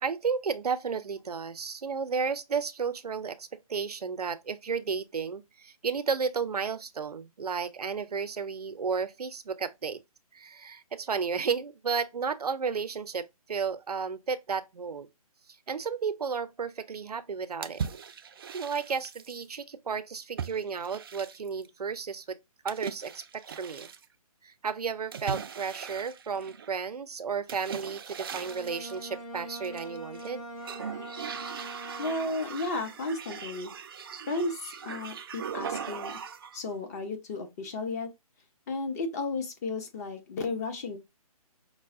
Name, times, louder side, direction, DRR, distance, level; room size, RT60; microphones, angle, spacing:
voice 1, 0.0-10.0 10.3-15.1 15.7-17.8 18.5-22.4 22.6-23.9 24.4-30.4, right 5 dB, 90° right, 0.5 m, -33 dB
sound 1, 17.6-19.4 20.4-21.7 22.7-24.1 25.1-26.8 27.5-29.0 29.6-30.3 30.6-36.6, right 7 dB, 40° right, 0.4 m, -39 dB
Bowed string instrument, 28.3-32.6, right 1 dB, 55° left, 2.3 m, -43 dB
voice 2, 32.0-33.7 34.3-36.2 36.5-38.1 38.7-41.0, left 3 dB, 25° left, 0.6 m, -33 dB
5.3 x 2.1 x 2.4 m
hypercardioid pair, 150°, 19 cm